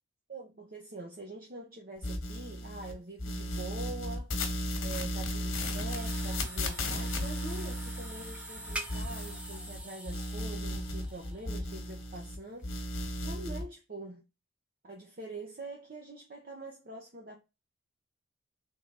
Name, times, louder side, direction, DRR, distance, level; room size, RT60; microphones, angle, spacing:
voice 1, 0.3-4.3 4.8-12.9 13.2-14.2 14.8-17.4, right 2 dB, 45° right, 0.8 m, -44 dB
sound 1, 2.0-2.9 3.2-9.8 10.1-12.4 12.6-13.6, left 1 dB, 70° left, 1.2 m, -35 dB
sound 2, 5.9-12.7, right 1 dB, 5° right, 0.5 m, -45 dB
3.8 x 3.7 x 3.2 m
head